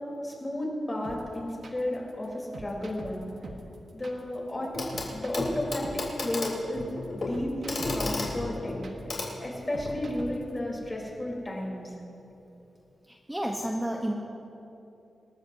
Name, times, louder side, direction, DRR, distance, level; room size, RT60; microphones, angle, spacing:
voice 1, 0.2-3.3 3.9-4.7 5.1-6.9 7.1-8.9 9.4-11.9, left 1 dB, 25° left, -2 dB, 3.8 m, -33 dB
sound 1, 1.0-10.6, right 3 dB, 70° right, 1.4 m, -44 dB
Clock, 4.7-5.1 5.3-10.0 11.3-11.4, left 2 dB, 50° left, 3.8 m, -33 dB
voice 2, 13.1-14.1, right 1 dB, 10° right, 0 dB, 1.0 m, -31 dB
27.0 x 13.5 x 2.8 m, 2.9 s
wide cardioid pair, 95°, 0 cm